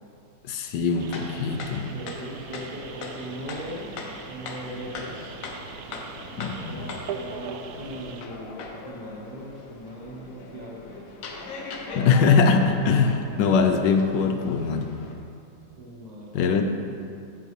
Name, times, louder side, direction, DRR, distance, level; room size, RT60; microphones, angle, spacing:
voice 1, 0.5-1.9 6.4-6.9 11.9-14.9 16.3-16.6, left 5 dB, 75° left, 6 dB, 1.2 m, -22 dB
sound 1, 0.9-15.1, left 3 dB, 55° left, 1.0 m, -40 dB
sound 2, 1.0-8.2, right 6 dB, 75° right, 0.8 m, -41 dB
voice 2, 1.9-5.3 6.7-11.1 12.0-12.4 15.8-16.6, equal, 25° right, -3 dB, 1.1 m, -39 dB
9.6 x 7.7 x 3.3 m, 2.5 s
omnidirectional pair, 2.0 m